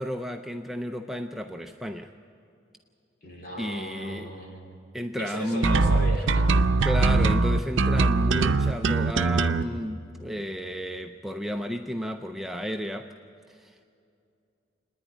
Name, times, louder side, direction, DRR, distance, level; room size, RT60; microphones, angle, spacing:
voice 1, 0.0-2.1 3.6-4.3 4.9-6.0 6.8-13.1 13.5-13.8, equal, ahead, 4 dB, 0.4 m, -32 dB
voice 2, 3.2-4.8 5.2-6.6, equal, 45° left, 0 dB, 3.2 m, -37 dB
sound 1, 5.6-9.6, right 3 dB, 75° right, 0.6 m, -21 dB
28.5 x 10.0 x 9.4 m, 2.5 s
head